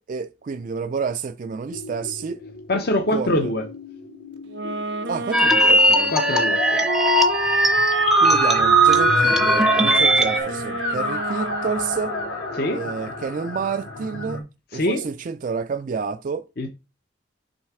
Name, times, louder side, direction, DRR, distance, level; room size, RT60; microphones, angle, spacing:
voice 1, 0.0-2.4 3.1-3.5 5.1-6.1 8.2-12.1 12.7-14.4 14.7-16.5, right 5 dB, 40° right, 0.3 m, -29 dB
sound 1, 1.7-14.4, left 2 dB, 85° left, 2.5 m, -31 dB
voice 2, 2.7-3.7 6.1-6.8 12.5-12.8 14.7-15.1 16.6-16.7, left 1 dB, 50° left, 0.7 m, -23 dB
sound 2, 4.5-12.3, right 4 dB, 60° right, 0.7 m, -29 dB
sound 3, 5.3-10.4, right 1 dB, ahead, 0.6 m, -18 dB
6.3 x 3.2 x 4.7 m
head